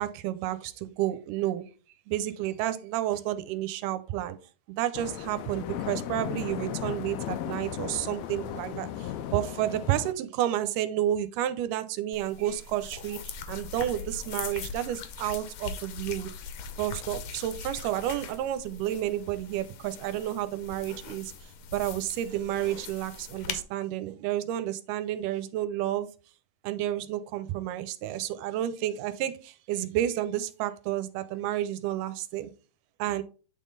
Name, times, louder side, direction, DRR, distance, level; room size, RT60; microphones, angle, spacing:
voice 1, 0.0-1.6 2.1-4.4 4.7-16.3 16.8-21.3 21.7-26.1 26.6-32.5 33.0-33.2, right 12 dB, 85° right, 2.2 m, -31 dB
sound 1, 4.9-10.1, left 11 dB, 90° left, 1.5 m, -36 dB
sound 2, 12.1-23.6, left 6 dB, 75° left, 1.8 m, -41 dB
8.8 x 3.7 x 3.9 m
omnidirectional pair, 3.8 m